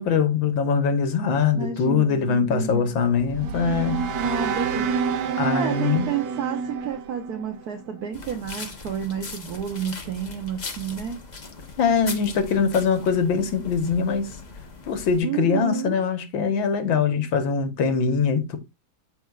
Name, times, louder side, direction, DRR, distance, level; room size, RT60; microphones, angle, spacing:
voice 1, 0.0-4.1 5.4-6.1 11.8-14.3 14.9-18.6, left 6 dB, 70° left, 1.9 m, -22 dB
voice 2, 1.5-3.0 4.2-5.0 5.3-11.2 15.2-16.0, right 8 dB, 60° right, 1.3 m, -30 dB
sound 1, 2.9-8.1, right 5 dB, 75° right, 1.6 m, -28 dB
sound 2, 8.1-15.2, left 4 dB, 30° left, 0.9 m, -39 dB
13.0 x 4.4 x 2.4 m
omnidirectional pair, 2.2 m